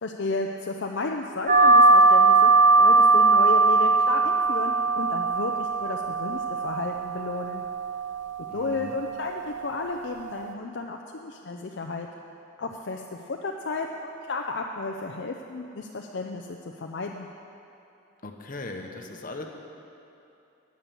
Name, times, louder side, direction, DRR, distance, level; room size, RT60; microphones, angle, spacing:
voice 1, 0.0-2.5 2.8-7.6 8.5-12.1 12.6-17.3, left 3 dB, 60° left, 2 dB, 0.5 m, -33 dB
sound 1, 1.5-10.5, right 3 dB, 40° right, 0.6 m, -21 dB
voice 2, 8.5-9.0 18.2-19.4, left 2 dB, 45° left, 3 dB, 1.0 m, -38 dB
9.7 x 9.0 x 7.0 m, 2.8 s
head